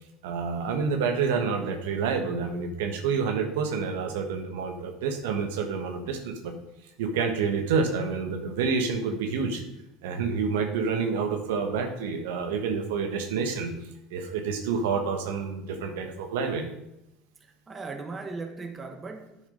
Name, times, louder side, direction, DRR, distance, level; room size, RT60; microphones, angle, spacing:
voice 1, 0.2-6.5 7.0-9.6 10.0-13.7 14.1-16.6, right 5 dB, 85° right, 1.4 m, -28 dB
voice 2, 17.4-19.4, right 3 dB, 25° right, 1.3 m, -38 dB
9.3 x 6.4 x 5.1 m
supercardioid pair, 90°, 0 cm